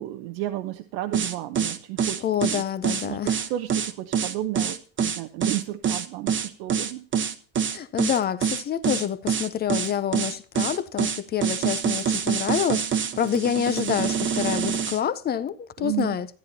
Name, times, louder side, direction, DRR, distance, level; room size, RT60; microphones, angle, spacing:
voice 1, 0.0-2.6 3.0-3.2 3.5-7.1 15.8-16.2, right 14 dB, 85° right, 1.0 m, -32 dB
sound 1, 1.1-15.0, right 7 dB, 25° right, 1.0 m, -25 dB
voice 2, 2.2-3.4 7.7-16.3, left 9 dB, 20° left, 0.5 m, -27 dB
14.0 x 10.5 x 2.8 m
cardioid pair, 150°, 50 cm